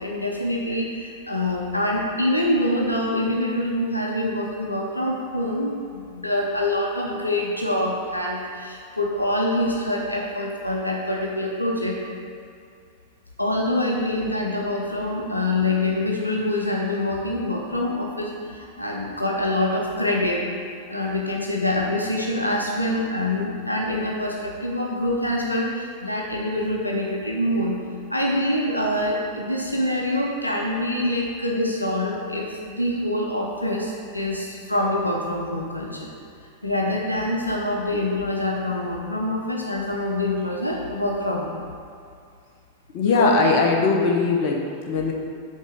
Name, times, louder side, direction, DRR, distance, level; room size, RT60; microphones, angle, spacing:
voice 1, 0.0-12.0 13.4-20.5 20.9-27.8 28.1-36.1 36.6-41.6 43.0-43.3, left 1 dB, 85° left, -1 dB, 0.6 m, -25 dB
voice 2, 42.9-45.1, left 4 dB, 45° left, 1 dB, 0.8 m, -20 dB
5.4 x 3.7 x 5.0 m, 2.4 s
figure-of-eight pair, 90°, 0 cm